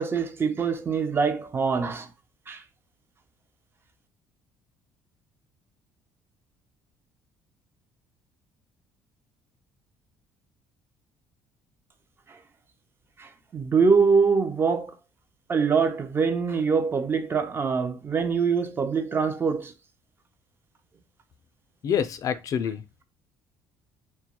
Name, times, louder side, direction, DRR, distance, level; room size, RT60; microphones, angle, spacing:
voice 1, 0.0-2.1 2.5-2.6 12.3-12.4 13.2-15.0 15.5-19.7, right 5 dB, 30° right, 0.4 m, -24 dB
voice 2, 21.8-22.8, left 8 dB, 50° left, 0.3 m, -26 dB
2.2 x 2.0 x 2.8 m
supercardioid pair, 80°, 7 cm